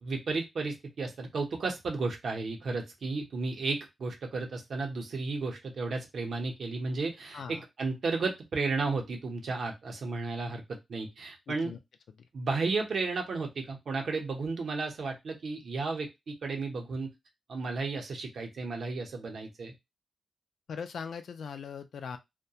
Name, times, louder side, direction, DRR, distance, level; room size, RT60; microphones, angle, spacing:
voice 1, 0.0-11.7 12.3-17.1 17.5-19.7, right 3 dB, 55° right, 0.7 m, -33 dB
voice 2, 11.5-11.8 20.7-22.2, left 6 dB, 70° left, 0.3 m, -40 dB
2.3 x 2.2 x 2.7 m
wide cardioid pair, 170°, 0 cm